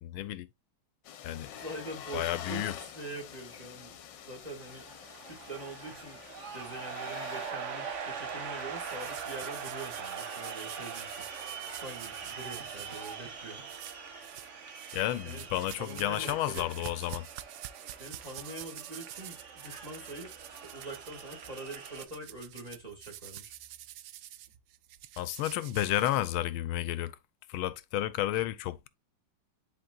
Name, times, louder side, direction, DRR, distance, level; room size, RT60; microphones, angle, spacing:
voice 1, 0.0-0.5 1.2-1.5 2.1-2.8 14.9-17.3 25.2-27.2 27.5-28.9, left 13 dB, 85° left, 1.5 m, -31 dB
sound 1, 1.0-7.5, left 9 dB, 65° left, 1.5 m, -46 dB
voice 2, 1.5-4.0 4.3-4.8 5.2-6.2 6.5-11.2 11.8-13.6 15.2-15.5 15.8-16.8 18.0-23.6, right 2 dB, 20° right, 2.0 m, -44 dB
sound 2, 4.4-22.0, right 6 dB, 45° right, 1.1 m, -42 dB
sound 3, 8.8-13.1 13.7-14.5 14.7-26.6, right 13 dB, 80° right, 0.9 m, -47 dB
10.5 x 4.2 x 2.4 m
omnidirectional pair, 2.3 m